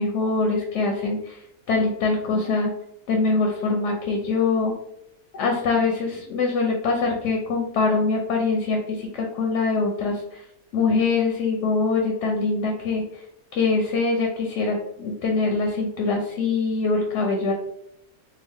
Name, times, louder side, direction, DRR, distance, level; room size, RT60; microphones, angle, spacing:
voice 1, 0.0-1.4 1.7-2.7 3.1-4.7 5.3-10.4 10.7-13.2 13.5-17.5, left 3 dB, 65° left, 1 dB, 0.9 m, -23 dB
3.6 x 2.2 x 3.4 m, 0.77 s
omnidirectional pair, 1.5 m